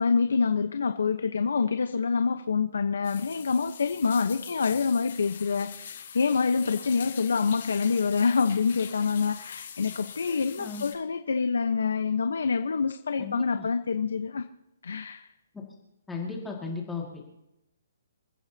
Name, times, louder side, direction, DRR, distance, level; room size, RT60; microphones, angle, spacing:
voice 1, 0.0-14.4 14.8-15.3, left 5 dB, 80° left, 8 dB, 1.0 m, -26 dB
sound 1, 3.0-10.9, left 8 dB, 45° left, 5.1 m, -43 dB
voice 2, 13.2-13.7 15.5-15.6 16.1-17.2, left 4 dB, 5° left, -2 dB, 2.2 m, -36 dB
29.0 x 14.5 x 2.9 m, 0.90 s
hypercardioid pair, 175°, 0 cm